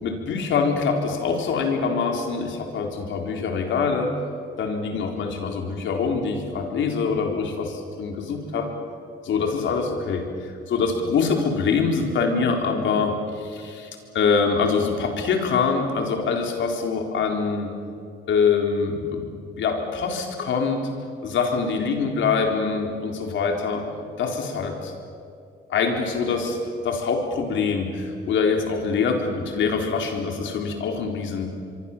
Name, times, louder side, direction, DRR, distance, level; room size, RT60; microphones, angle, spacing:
voice 1, 0.0-4.1 4.6-8.7 9.2-13.9 14.1-17.7 18.3-19.3 19.6-20.8 21.2-23.8 24.2-24.9 25.7-26.6 26.8-31.5, left 5 dB, 75° left, 3 dB, 4.1 m, -24 dB
26.0 x 23.5 x 7.4 m, 2.4 s
cardioid pair, 90°, 20 cm